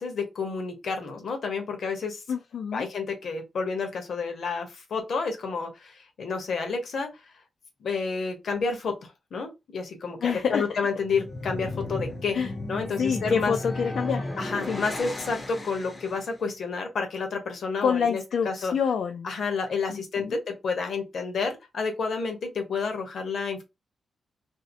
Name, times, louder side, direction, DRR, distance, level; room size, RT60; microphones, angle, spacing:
voice 1, 0.0-2.2 2.7-7.1 7.8-12.4 12.7-13.5 14.4-18.7 19.2-23.6, left 4 dB, 65° left, 0.8 m, -30 dB
voice 2, 2.3-2.9 10.2-10.6 12.3-12.5 13.0-14.3 14.7-14.8 17.8-19.3 19.9-20.4, left 6 dB, 85° left, 0.3 m, -27 dB
sound 1, 10.9-16.4, left 2 dB, 25° left, 0.5 m, -35 dB
2.7 x 2.0 x 2.6 m
wide cardioid pair, 145°, 0 cm